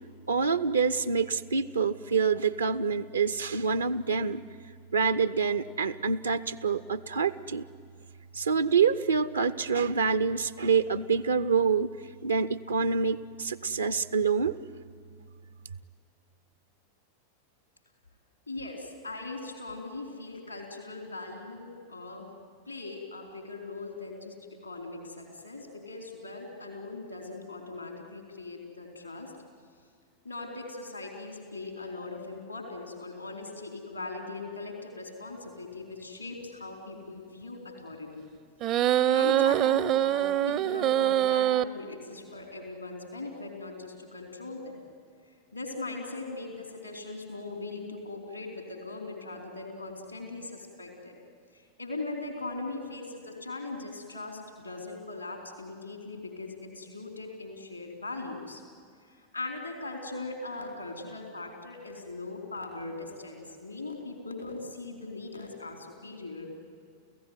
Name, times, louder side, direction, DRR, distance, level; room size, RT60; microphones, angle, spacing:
voice 1, 0.3-4.4 4.9-7.6 8.3-11.9 12.2-14.6, right 5 dB, 75° right, 12 dB, 0.7 m, -26 dB
voice 2, 18.5-22.3 22.7-24.4 24.6-29.3 30.2-38.3 38.7-44.8 45.5-51.1 51.5-58.6 59.0-66.5, left 3 dB, 85° left, 3 dB, 4.2 m, -40 dB
sound 1, 38.6-41.6, right 12 dB, 35° right, 0.6 m, -24 dB
29.5 x 16.0 x 9.5 m, 2.3 s
figure-of-eight pair, 90°, 0 cm